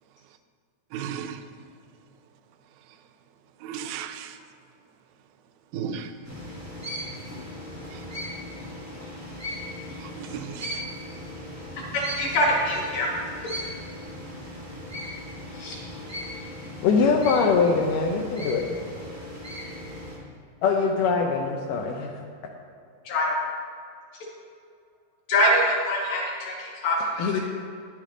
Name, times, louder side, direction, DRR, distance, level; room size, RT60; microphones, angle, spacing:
voice 1, 0.9-1.6 2.7-3.2 3.6-4.6 5.7-6.2 7.8-8.1 10.0-10.9, right 7 dB, 85° right, 8 dB, 2.3 m, -37 dB
sound 1, 6.2-20.2, equal, 15° right, 0.5 m, -38 dB
voice 2, 11.9-13.1 15.5-15.8 23.0-23.3 25.3-27.4, left 1 dB, 55° left, -2 dB, 2.7 m, -24 dB
voice 3, 16.8-18.6 20.6-22.2 27.2-27.4, left 5 dB, 75° left, 1 dB, 2.2 m, -22 dB
10.0 x 8.6 x 3.8 m, 2.4 s
omnidirectional pair, 4.1 m